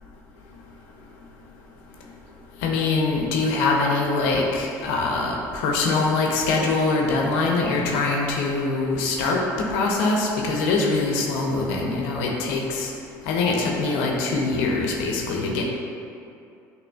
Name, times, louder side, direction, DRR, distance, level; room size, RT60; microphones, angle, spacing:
voice 1, 2.6-9.4 9.7-12.9 13.3-15.6, left 3 dB, 75° left, 0 dB, 0.5 m, -23 dB
6.0 x 3.0 x 2.3 m, 2.6 s
supercardioid pair, 80°, 9 cm